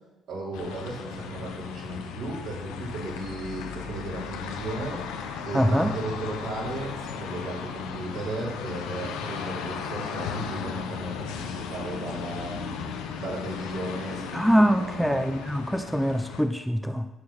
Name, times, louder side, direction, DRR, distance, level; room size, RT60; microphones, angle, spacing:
voice 1, 0.3-5.0 5.4-15.2, right 2 dB, 70° right, -5 dB, 4.4 m, -35 dB
sound 1, 0.5-16.4, left 6 dB, 85° left, 1.1 m, -36 dB
voice 2, 5.5-5.9 14.3-17.1, equal, ahead, 7 dB, 0.7 m, -23 dB
14.5 x 4.8 x 6.0 m, 1.1 s
supercardioid pair, 65°, 0 cm